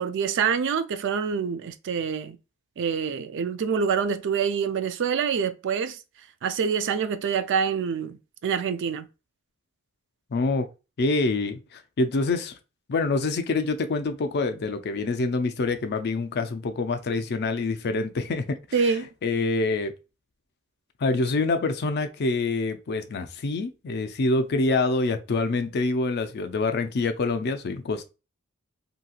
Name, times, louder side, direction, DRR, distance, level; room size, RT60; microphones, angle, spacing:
voice 1, 0.0-2.4 2.8-6.0 6.4-9.1 18.7-19.1, right 6 dB, 55° right, 0.3 m, -26 dB
voice 2, 10.3-10.7 11.0-12.6 12.9-18.6 19.2-19.9 21.0-28.1, left 3 dB, 50° left, 0.4 m, -26 dB
2.9 x 2.8 x 2.3 m
head